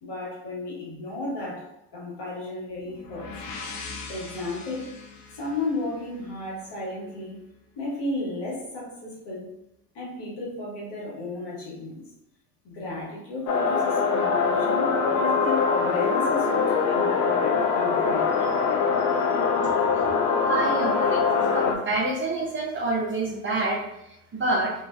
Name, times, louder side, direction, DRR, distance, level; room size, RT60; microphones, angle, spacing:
voice 1, 0.0-3.3 4.1-4.9 5.3-7.5 7.8-9.5 9.9-12.0 12.6-18.7 18.9-19.4, left 2 dB, 60° left, -5 dB, 1.3 m, -34 dB
sound 1, 2.8-6.6, left 4 dB, 80° left, 0.6 m, -41 dB
sound 2, 13.5-21.8, left 5 dB, 40° left, 0.5 m, -23 dB
voice 2, 20.5-21.3 21.5-24.7, right 2 dB, 25° right, -2 dB, 0.5 m, -27 dB
2.6 x 2.1 x 2.2 m, 0.84 s
hypercardioid pair, 65°, 47 cm